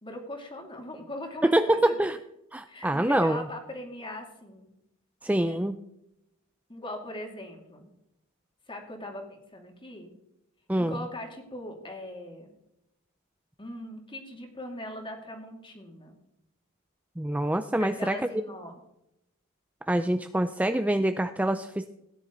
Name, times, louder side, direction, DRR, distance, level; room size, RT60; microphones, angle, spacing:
voice 1, 0.0-2.0 2.7-4.7 5.5-5.6 6.7-7.9 8.7-10.1 10.8-12.5 13.6-16.2 17.8-18.7, left 1 dB, 25° left, 3 dB, 2.6 m, -40 dB
voice 2, 1.4-2.2 2.5-3.4 5.2-5.7 10.7-11.0 17.2-18.2 19.9-21.9, right 1 dB, 5° right, 9 dB, 0.4 m, -25 dB
17.0 x 10.5 x 3.9 m, 0.84 s
head